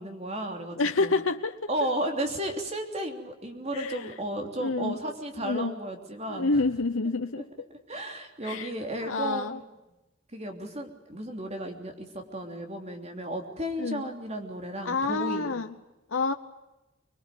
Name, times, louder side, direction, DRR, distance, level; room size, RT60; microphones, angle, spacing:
voice 1, 0.0-1.1 1.7-6.6 7.9-9.6 10.3-15.6, right 1 dB, 30° right, 4 dB, 3.2 m, -34 dB
voice 2, 0.8-1.6 3.7-4.1 4.6-5.0 5.4-5.7 6.3-7.5 8.4-8.7 9.0-9.6 13.8-14.1 14.8-15.7 16.1-16.3, left 3 dB, 80° left, 7 dB, 1.0 m, -28 dB
25.5 x 21.5 x 9.3 m, 0.98 s
head